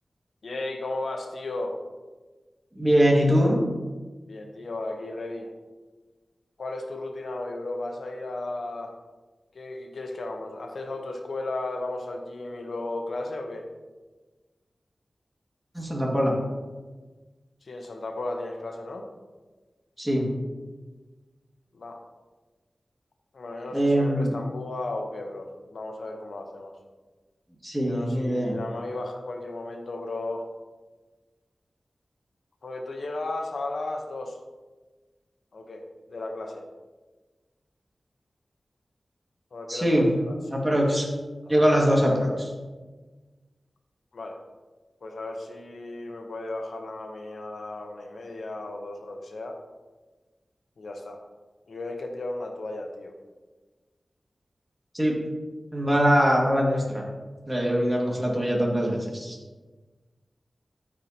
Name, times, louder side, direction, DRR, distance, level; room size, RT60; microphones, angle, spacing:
voice 1, 0.4-1.8 4.3-5.5 6.6-8.9 9.5-13.7 17.6-19.1 21.7-22.0 23.3-26.7 27.8-30.4 32.6-34.4 35.5-36.6 39.5-40.9 41.4-41.6 44.1-44.4 45.0-49.6 50.8-51.2 51.7-53.2, left 2 dB, 90° left, 3 dB, 0.9 m, -35 dB
voice 2, 2.8-3.6 15.7-16.3 20.0-20.3 23.7-24.3 27.6-28.6 39.7-40.1 40.5-41.1 41.5-42.5 54.9-55.2 55.7-57.0 57.5-59.4, equal, 15° right, -2 dB, 2.0 m, -22 dB
13.5 x 4.8 x 2.9 m, 1.3 s
wide cardioid pair, 60°, 0 cm